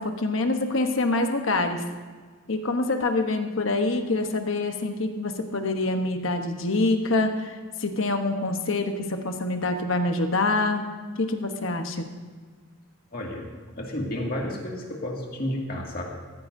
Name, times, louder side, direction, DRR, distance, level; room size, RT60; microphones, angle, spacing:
voice 1, 0.0-1.8 2.5-10.8 11.2-12.1, left 2 dB, 65° left, 5 dB, 1.1 m, -26 dB
voice 2, 13.1-13.5 13.7-16.0, left 1 dB, 45° left, -1 dB, 2.2 m, -31 dB
15.0 x 14.5 x 2.7 m, 1.5 s
head